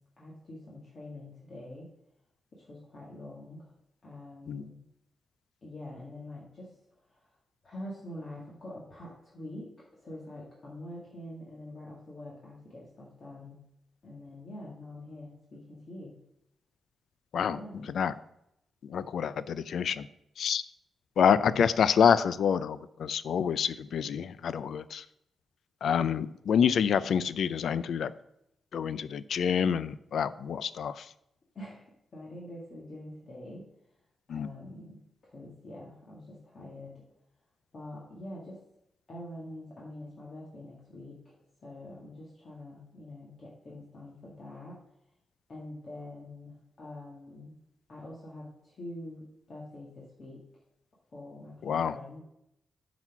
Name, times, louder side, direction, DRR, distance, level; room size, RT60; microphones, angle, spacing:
voice 1, 0.2-1.9 2.5-3.7 4.0-4.9 5.6-6.7 7.1-7.3 7.6-9.7 10.0-13.6 14.0-16.2 17.4-17.8 25.8-26.2 31.6-31.8 32.1-33.6 34.3-37.0 37.7-38.6 39.1-41.2 41.6-44.8 45.5-47.6 47.9-50.4 51.1-52.2, left 1 dB, 40° left, -5 dB, 1.7 m, -45 dB
voice 2, 18.8-20.1 20.4-20.6 21.2-25.0 25.8-28.1 28.7-31.1 34.3-34.5 51.6-51.9, left 7 dB, 70° left, 16 dB, 0.4 m, -27 dB
8.8 x 4.2 x 5.9 m, 0.80 s
wide cardioid pair, 150°, 0 cm